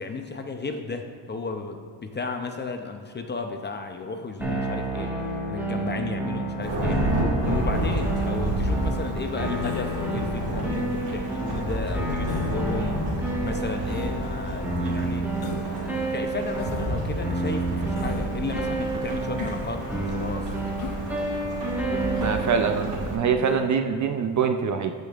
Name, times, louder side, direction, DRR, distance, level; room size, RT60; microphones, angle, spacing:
voice 1, 0.0-5.1 5.5-7.0 7.4-13.1 13.4-15.3 16.1-20.5 22.0-22.6, left 4 dB, 25° left, 5 dB, 0.5 m, -34 dB
sound 1, 4.4-23.7, right 2 dB, 5° right, 1.4 m, -30 dB
Thunderstorm / Rain, 6.6-23.2, right 1 dB, 75° right, 2.0 m, -30 dB
Human voice, 9.6-10.1 10.8-11.4 12.3-12.6 13.8-14.2 15.4-15.8 16.6-16.9 18.0-18.3 19.4-19.7 20.8-21.0 22.1-22.4 23.4-23.7, left 4 dB, 60° left, 1.1 m, -38 dB
voice 2, 22.2-24.9, right 6 dB, 45° right, 7 dB, 0.6 m, -24 dB
13.5 x 5.2 x 2.4 m, 2.1 s
cardioid pair, 105°, 42 cm